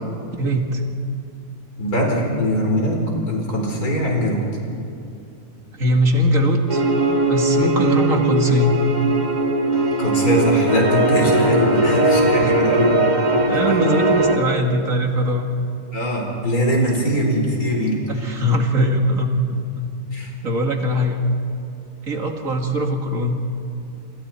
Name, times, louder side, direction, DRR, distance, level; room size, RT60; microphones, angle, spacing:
voice 1, 0.4-0.8 5.7-6.8 7.3-8.7 12.4-12.5 13.1-15.5 18.1-19.9 20.4-21.2 22.1-23.4, equal, 60° right, 2 dB, 2.4 m, -21 dB
voice 2, 1.8-4.5 10.0-12.9 15.9-18.0 20.1-20.3, equal, 70° left, 0 dB, 4.9 m, -21 dB
sound 1, 6.7-14.4, right 1 dB, 30° right, 2.1 m, -19 dB
27.5 x 26.0 x 4.4 m, 2.7 s
omnidirectional pair, 1.6 m